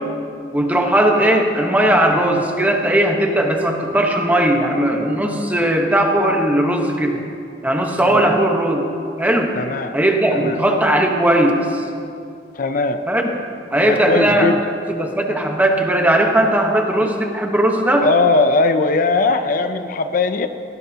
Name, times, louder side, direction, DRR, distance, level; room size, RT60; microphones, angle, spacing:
voice 1, 0.5-7.2 7.6-8.8 9.2-9.5 9.9-11.8 13.1-13.3 13.7-14.5 15.0-18.1, right 1 dB, 10° right, 2 dB, 1.1 m, -17 dB
voice 2, 8.1-8.4 9.5-10.0 10.3-10.6 12.5-13.0 13.9-14.6 18.0-20.5, left 3 dB, 50° left, 9 dB, 0.5 m, -19 dB
17.0 x 16.0 x 2.8 m, 2.5 s
head